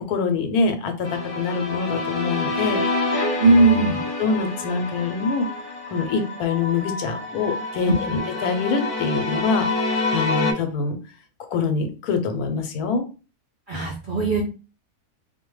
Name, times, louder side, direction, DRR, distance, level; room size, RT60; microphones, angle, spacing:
voice 1, 0.0-3.0 4.2-5.5 5.9-11.0 11.5-13.0, left 4 dB, 85° left, 7 dB, 1.1 m, -25 dB
sound 1, 1.0-10.5, left 2 dB, 65° left, 0.3 m, -27 dB
voice 2, 3.4-4.0 8.1-8.2 13.7-14.4, right 3 dB, 60° right, -3 dB, 0.5 m, -18 dB
2.5 x 2.2 x 3.0 m, 0.33 s
omnidirectional pair, 1.6 m